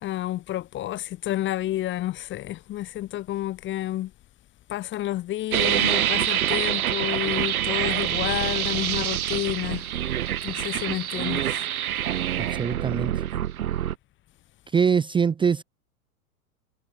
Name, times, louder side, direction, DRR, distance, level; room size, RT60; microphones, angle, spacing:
voice 1, 0.0-4.1 4.7-9.9 10.4-11.6, left 14 dB, 25° left, 1.2 m, -30 dB
sound 1, 5.5-13.9, right 11 dB, 70° right, 1.9 m, -26 dB
voice 2, 12.4-13.2 14.7-15.6, right 6 dB, 10° right, 0.8 m, -23 dB
hypercardioid pair, 105°, 45 cm